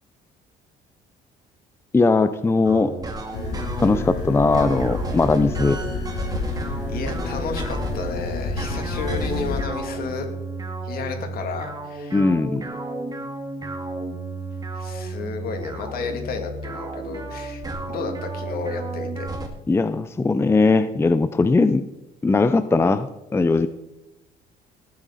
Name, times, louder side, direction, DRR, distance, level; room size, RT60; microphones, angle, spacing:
voice 1, 1.9-2.9 3.8-5.8 12.1-12.7 19.7-21.8 22.2-23.7, left 3 dB, 15° left, 12 dB, 0.5 m, -19 dB
sound 1, 2.6-4.1 4.5-8.1 8.5-19.5, right 2 dB, 20° right, 2.1 m, -33 dB
sound 2, 3.3-9.6, left 2 dB, 90° left, 2.6 m, -29 dB
voice 2, 6.9-10.3 10.8-12.2 14.7-17.6 17.9-19.3, left 5 dB, 60° left, 4 dB, 2.7 m, -32 dB
19.0 x 9.0 x 4.2 m, 0.93 s
cardioid pair, 110°, 17 cm